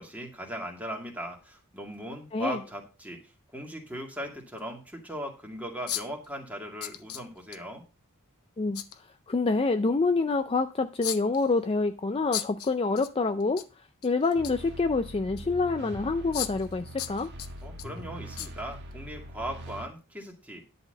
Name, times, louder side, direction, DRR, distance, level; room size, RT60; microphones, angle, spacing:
voice 1, 0.0-3.2 3.5-7.8 17.6-20.6, equal, 5° right, 2.1 m, -38 dB
sound 1, 1.9-2.0 3.9-4.0 4.6-4.7 5.9-6.3 6.8-7.6 8.7-9.0 11.0-11.5 12.3-13.1 13.4-13.7 14.0-14.7 15.4-15.5 16.3-16.7 17.0-17.9 18.4-18.5 18.9-19.0, left 11 dB, 75° left, 0.9 m, -35 dB
voice 2, 9.3-13.6 14.0-17.3, left 3 dB, 25° left, 0.4 m, -27 dB
sound 2, 14.3-19.9, equal, 50° right, 1.4 m, -42 dB
11.0 x 4.2 x 6.5 m
head